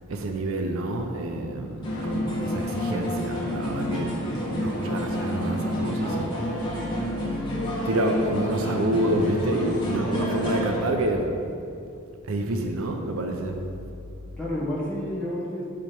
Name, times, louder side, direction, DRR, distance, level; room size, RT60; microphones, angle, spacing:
voice 1, 0.1-4.2 4.5-6.9 7.8-11.6 12.2-13.6, right 1 dB, 65° right, 4 dB, 0.6 m, -28 dB
sound 1, 1.8-10.9, left 1 dB, 20° left, 1.4 m, -29 dB
voice 2, 4.0-4.8 10.1-10.6 14.4-15.7, left 1 dB, 5° left, -7 dB, 1.4 m, -32 dB
7.0 x 5.0 x 4.4 m, 2.6 s
head